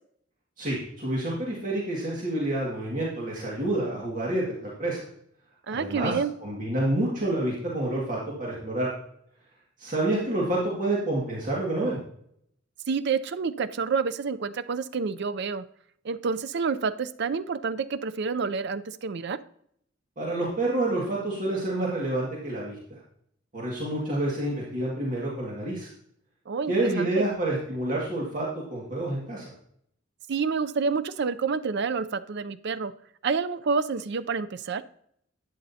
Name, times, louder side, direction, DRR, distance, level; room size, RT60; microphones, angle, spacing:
voice 1, 0.6-5.0 5.7-6.1 6.4-8.9 9.8-12.0 20.2-23.0 23.5-25.9 26.7-29.4, right 1 dB, 45° right, -4 dB, 2.0 m, -28 dB
voice 2, 5.7-6.3 12.9-15.6 16.0-19.4 26.5-27.3 30.3-32.9 33.2-34.8, right 5 dB, 60° right, 13 dB, 0.5 m, -28 dB
11.5 x 9.2 x 2.8 m, 0.70 s
head